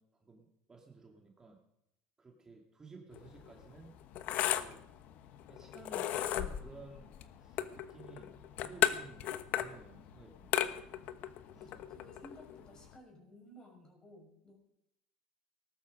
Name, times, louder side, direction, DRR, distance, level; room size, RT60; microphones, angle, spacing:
voice 1, 0.0-1.6 2.2-3.9 4.5-4.8 5.5-7.1 7.4-10.8, right 4 dB, 20° right, 0 dB, 2.5 m, -54 dB
sound 1, 3.1-13.0, left 12 dB, 55° left, 1.1 m, -36 dB
voice 2, 11.5-14.6, equal, 25° left, 2 dB, 6.3 m, -56 dB
19.0 x 12.0 x 5.3 m, 0.81 s
supercardioid pair, 115°, 3 cm